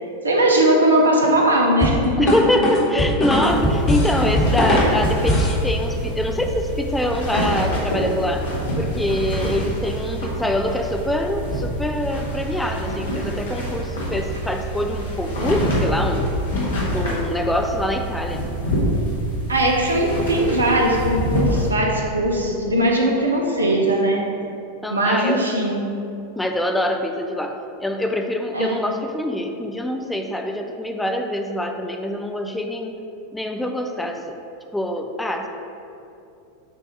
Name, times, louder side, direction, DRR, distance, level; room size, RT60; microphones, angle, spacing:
voice 1, 0.2-2.2 19.5-24.2 24.9-25.8 28.5-28.8, right 1 dB, 80° right, 0 dB, 0.8 m, -19 dB
sound 1, 1.8-5.6, left 1 dB, 35° left, 1.4 m, -20 dB
voice 2, 2.2-8.5 8.8-16.3 16.9-18.5 24.8-25.4 26.4-33.0 33.3-34.4 34.7-35.5, left 1 dB, 5° left, 4 dB, 0.4 m, -24 dB
sound 2, 3.4-21.7, equal, 65° left, 1.3 m, -26 dB
7.5 x 2.7 x 5.1 m, 2.7 s
figure-of-eight pair, 90°, 0 cm